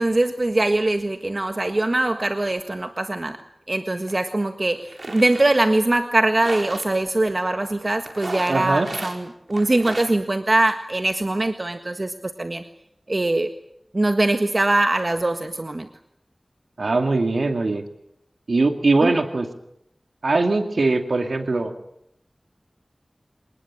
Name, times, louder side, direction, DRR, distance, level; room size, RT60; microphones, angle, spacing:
voice 1, 0.0-3.4 3.7-12.6 13.1-13.5 13.9-15.9 19.0-19.1, right 2 dB, 45° right, 7 dB, 1.6 m, -22 dB
sound 1, 4.1-4.2 4.8-5.5 6.2-6.9 8.1-9.2 9.5-10.1, right 2 dB, 65° right, 4.8 m, -35 dB
voice 2, 8.5-8.9 16.8-17.8 18.5-19.5 20.2-21.7, right 3 dB, 90° right, 6 dB, 2.3 m, -21 dB
27.5 x 19.5 x 8.7 m, 0.76 s
wide cardioid pair, 50°, 0 cm